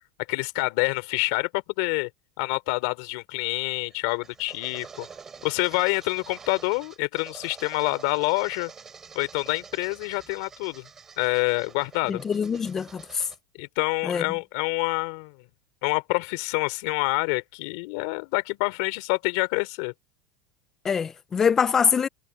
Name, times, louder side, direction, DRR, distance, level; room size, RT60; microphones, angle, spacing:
voice 1, 0.3-2.1 2.4-5.1 5.4-8.7 9.1-10.9 11.2-12.2 13.5-15.4 15.8-19.9, left 27 dB, 55° left, 3.0 m, -27 dB
sound 1, 3.7-13.4, right 6 dB, 15° right, 7.3 m, -47 dB
voice 2, 12.1-13.0 14.0-14.3 20.8-22.1, left 6 dB, 15° left, 0.4 m, -24 dB
supercardioid pair, 160°, 3 cm